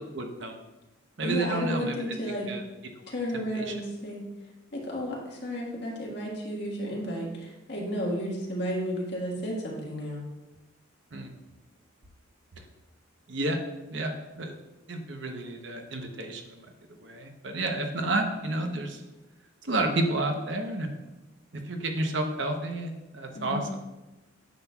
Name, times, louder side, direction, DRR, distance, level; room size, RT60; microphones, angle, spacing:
voice 1, 0.1-0.6 1.2-2.1 2.5-2.6 3.5-3.7 11.1-11.3 13.3-13.6 13.9-14.5 14.9-16.7 17.0-19.0 19.6-20.9 21.5-23.6, right 2 dB, 65° right, 4 dB, 0.8 m, -30 dB
voice 2, 1.2-2.5 3.1-4.2 4.7-10.2 18.0-18.2 23.3-23.6, equal, 55° left, -3 dB, 1.6 m, -32 dB
9.2 x 5.9 x 2.3 m, 1.0 s
head